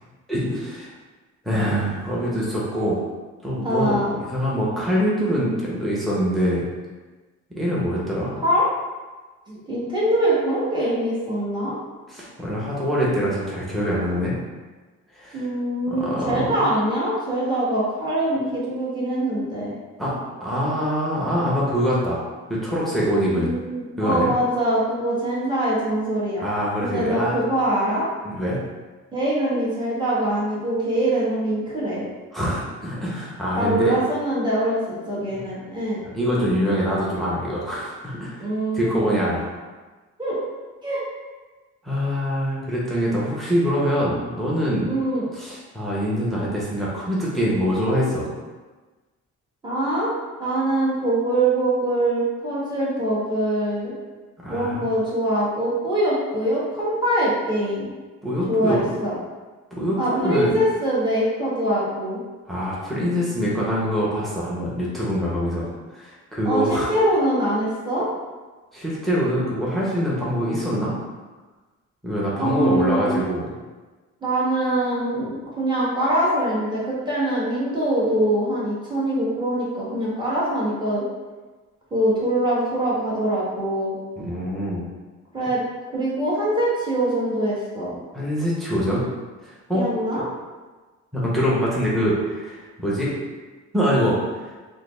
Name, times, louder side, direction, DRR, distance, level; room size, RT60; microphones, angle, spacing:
voice 1, 0.3-0.9 1.4-3.0 3.4-6.6 7.5-8.4 12.1-14.3 15.1-15.5 15.9-16.7 20.0-20.1 20.4-22.2 22.5-23.5 24.0-24.3 26.4-27.4 28.2-28.6 32.3-33.9 35.3-35.4 36.1-38.4 38.7-39.5 41.8-44.9 45.3-48.3 54.4-54.9 58.2-58.9 59.7-60.6 62.5-65.7 65.9-66.9 68.7-70.9 72.0-73.5 84.2-84.8 88.1-89.0 89.4-89.8 90.1-90.2 91.1-93.1 93.7-94.5, equal, ahead, -7 dB, 0.9 m, -24 dB
voice 2, 3.6-4.1 8.4-8.7 9.5-11.8 15.3-19.7 23.2-26.5 26.8-28.1 29.1-32.0 33.5-36.0 38.4-39.3 40.2-40.4 40.8-41.0 44.9-45.3 49.6-50.1 50.4-53.9 54.5-57.9 58.5-59.2 59.9-62.2 66.4-68.1 72.4-73.2 74.2-81.0 81.9-83.9 85.3-85.6 85.9-87.9 89.7-90.2, right 1 dB, 15° right, -8 dB, 1.3 m, -23 dB
3.8 x 2.2 x 3.2 m, 1.3 s
cardioid pair, 90°, 30 cm